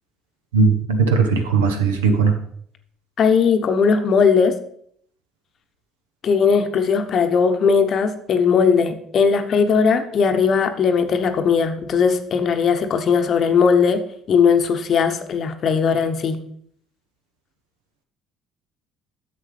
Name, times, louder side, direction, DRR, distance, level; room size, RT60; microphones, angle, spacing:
voice 1, 0.5-2.4, right 5 dB, 75° right, 6 dB, 1.0 m, -18 dB
voice 2, 3.2-4.5 6.2-14.0 14.3-16.4, left 6 dB, 45° left, 8 dB, 0.9 m, -18 dB
11.0 x 7.4 x 3.3 m, 0.65 s
figure-of-eight pair, 55°, 0 cm